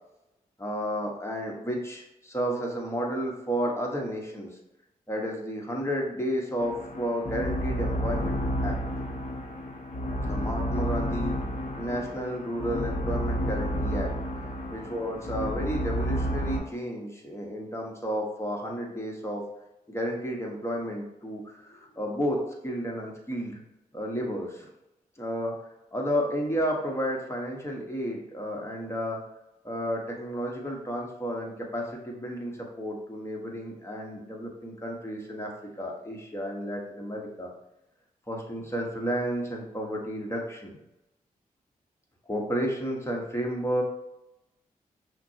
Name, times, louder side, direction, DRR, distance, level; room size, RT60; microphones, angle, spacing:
voice 1, 0.6-4.5 5.1-8.8 10.2-11.4 11.8-14.1 14.7-19.5 19.9-23.6 23.9-24.7 25.2-25.6 25.9-29.2 29.6-37.5 38.3-40.8 42.3-43.8, equal, 15° left, -1 dB, 1.2 m, -32 dB
sound 1, 6.6-16.6, equal, 45° left, 0.9 m, -30 dB
5.8 x 2.2 x 2.8 m, 0.91 s
supercardioid pair, 45°, 16 cm